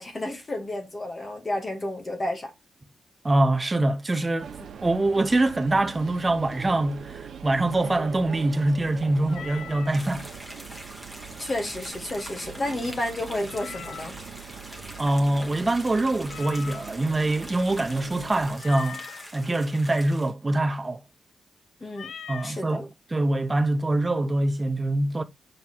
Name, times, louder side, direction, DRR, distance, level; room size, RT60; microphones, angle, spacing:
voice 1, 0.0-2.5 4.6-4.7 11.4-14.2 21.8-22.1 22.4-22.8, left 1 dB, 25° left, 1.4 m, -31 dB
voice 2, 3.2-4.5 4.8-10.2 15.0-19.0 19.3-21.0 22.3-25.2, right 2 dB, 15° right, 0.6 m, -24 dB
sound 1, 4.4-18.6, right 7 dB, 60° right, 0.9 m, -42 dB
Meow, 9.3-10.0 13.5-14.3 16.3-17.1 18.6-19.3 21.9-22.6, left 8 dB, 80° left, 0.4 m, -41 dB
sound 2, 9.9-20.3, equal, 10° left, 1.4 m, -43 dB
6.4 x 3.5 x 4.2 m
wide cardioid pair, 150°, 0 cm